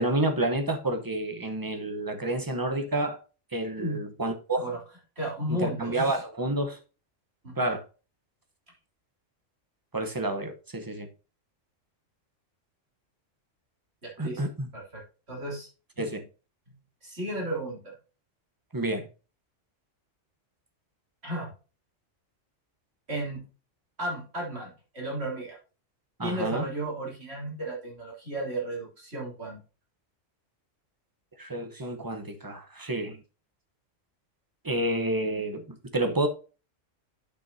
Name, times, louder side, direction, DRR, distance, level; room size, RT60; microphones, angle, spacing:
voice 1, 0.0-3.2 3.5-4.6 5.5-6.8 7.6-7.8 9.9-11.1 14.2-14.7 16.0-16.2 18.7-19.1 26.2-26.6 31.4-33.2 34.6-35.6 35.9-36.3, right 1 dB, 20° right, 0.9 m, -29 dB
voice 2, 5.2-6.2 7.4-7.7 14.0-14.4 14.7-15.0 15.3-15.7 16.0-16.2 17.0-17.9 21.2-21.5 23.1-23.4 24.0-25.6 26.2-29.6, right 1 dB, 55° right, 3.6 m, -34 dB
10.5 x 6.1 x 2.7 m
omnidirectional pair, 1.3 m